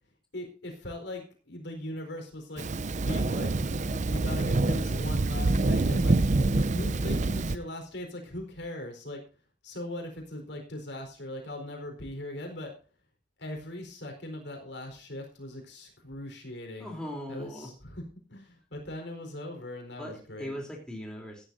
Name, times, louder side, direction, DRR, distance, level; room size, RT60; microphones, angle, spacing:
voice 1, 0.3-2.6 3.0-3.5 3.8-6.2 6.7-9.2 9.6-12.7 13.4-16.9 17.3-18.0 18.3-20.5, left 1 dB, 65° left, 3 dB, 4.3 m, -40 dB
Thunder, 2.6-7.6, right 2 dB, 40° right, 0.6 m, -26 dB
voice 2, 16.8-17.7 20.0-21.5, equal, 5° left, -1 dB, 3.4 m, -39 dB
16.5 x 10.5 x 2.7 m, 0.38 s
head